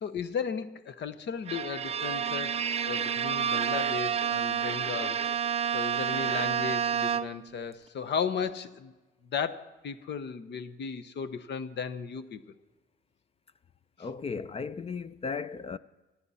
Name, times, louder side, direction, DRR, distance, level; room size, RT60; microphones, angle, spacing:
voice 1, 0.0-5.2 5.7-8.9 9.3-12.4, left 6 dB, 60° left, 1.0 m, -35 dB
Bowed string instrument, 1.5-7.6, right 8 dB, 30° right, 0.5 m, -29 dB
voice 2, 14.0-15.8, left 5 dB, 30° left, 0.5 m, -36 dB
26.5 x 9.9 x 4.2 m
cardioid pair, 90°, 20 cm